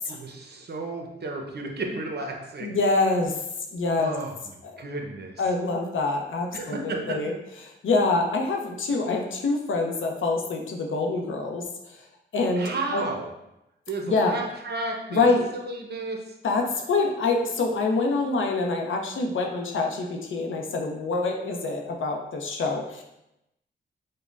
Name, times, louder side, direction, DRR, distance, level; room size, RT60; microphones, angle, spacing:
voice 1, 0.1-2.8 4.0-5.4 6.5-7.2 12.6-13.3 13.9-15.3 15.5-16.3, right 2 dB, 55° right, 2 dB, 0.7 m, -33 dB
voice 2, 2.6-3.3 3.7-4.1 4.7-4.8 5.4-7.3 7.6-11.6 12.3-13.0 14.0-14.4 15.1-15.5 16.4-23.0, left 3 dB, 70° left, 1 dB, 0.6 m, -25 dB
5.0 x 2.2 x 2.4 m, 0.87 s
cardioid pair, 55°, 21 cm